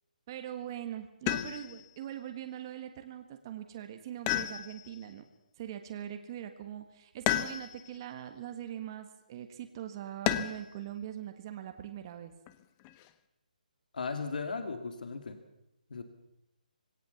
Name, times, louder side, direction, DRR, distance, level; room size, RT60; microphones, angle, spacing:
voice 1, 0.3-5.3 5.6-12.3, right 11 dB, 30° right, 7 dB, 1.5 m, -42 dB
sound 1, 1.3-1.9 4.3-5.1 7.3-8.0 10.3-10.8 12.5-13.1, left 14 dB, 20° left, 0.7 m, -32 dB
voice 2, 13.9-15.4 15.9-16.0, left 4 dB, 70° left, 7 dB, 2.6 m, -37 dB
21.0 x 17.5 x 7.1 m, 0.86 s
hypercardioid pair, 165°, 5 cm